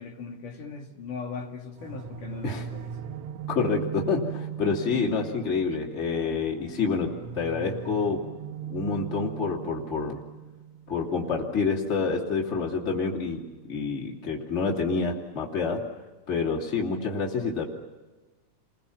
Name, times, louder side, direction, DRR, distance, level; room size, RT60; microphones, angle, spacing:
voice 1, 0.0-2.9, left 5 dB, 85° left, 2 dB, 4.2 m, -39 dB
sound 1, 1.8-14.5, right 9 dB, 65° right, 2.1 m, -40 dB
voice 2, 3.5-8.2 8.7-10.2 10.9-13.4 13.7-15.8 16.3-17.7, left 4 dB, 20° left, -1 dB, 3.0 m, -28 dB
30.0 x 22.0 x 7.2 m, 1.2 s
omnidirectional pair, 3.5 m